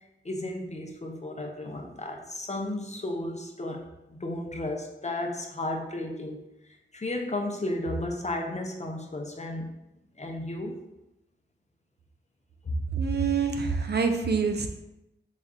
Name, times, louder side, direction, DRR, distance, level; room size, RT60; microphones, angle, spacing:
voice 1, 0.2-9.7 10.2-10.8 12.6-12.8, left 1 dB, 35° left, 2 dB, 0.5 m, -34 dB
voice 2, 12.9-14.7, right 5 dB, 55° right, 5 dB, 0.4 m, -26 dB
4.0 x 2.4 x 3.5 m, 0.91 s
wide cardioid pair, 70°, 20 cm